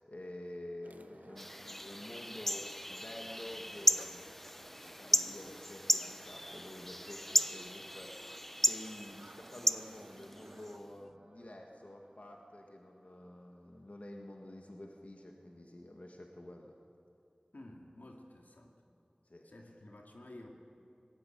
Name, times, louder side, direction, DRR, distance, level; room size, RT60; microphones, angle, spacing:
voice 1, 0.0-4.3 4.6-16.7 19.2-19.5, left 1 dB, 55° left, 1 dB, 1.8 m, -49 dB
sound 1, 0.8-10.8, right 2 dB, 60° right, 0.9 m, -57 dB
sound 2, 1.4-10.7, equal, 10° left, 0.4 m, -35 dB
sound 3, 9.2-15.2, right 1 dB, 45° right, 4.5 m, -64 dB
voice 2, 17.5-18.7 19.4-20.6, left 1 dB, 80° left, 1 dB, 2.4 m, -52 dB
19.0 x 17.5 x 9.3 m, 2.5 s
wide cardioid pair, 50°, 3 cm